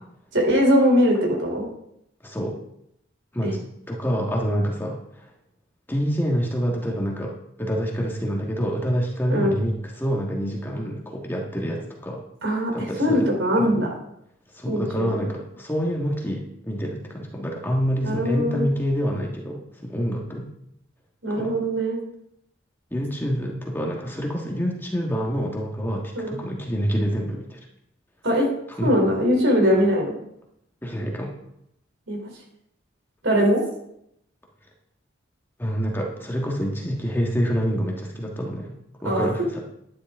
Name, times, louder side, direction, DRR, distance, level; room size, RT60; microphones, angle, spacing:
voice 1, 0.3-1.6 3.4-3.5 9.3-9.5 12.4-13.9 14.7-15.2 18.1-18.6 21.2-22.0 26.1-26.4 28.2-28.5 28.8-30.2 32.1-32.2 33.2-33.6 39.0-39.3, equal, 75° right, 0 dB, 3.3 m, -21 dB
voice 2, 2.2-2.5 3.3-5.3 5.9-7.3 7.6-12.2 12.7-13.3 13.6-13.9 14.5-20.5 21.3-21.6 22.9-27.6 28.8-28.9 30.8-31.3 35.6-38.7 39.0-39.6, equal, 10° left, -1 dB, 1.5 m, -27 dB
11.5 x 10.5 x 3.6 m, 0.77 s
head